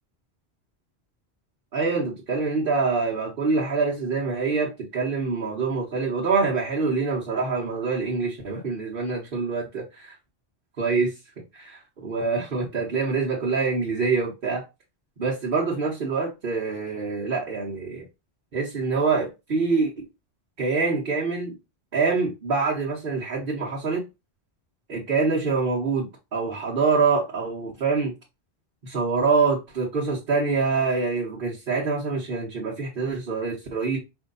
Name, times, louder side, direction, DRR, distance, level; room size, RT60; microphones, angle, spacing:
voice 1, 1.7-10.1 10.8-11.1 11.5-14.6 15.2-18.0 18.5-19.9 20.6-21.5 21.9-24.0 24.9-28.1 28.8-34.0, right 4 dB, 55° right, 1.3 m, -25 dB
5.0 x 2.7 x 4.0 m
omnidirectional pair, 1.1 m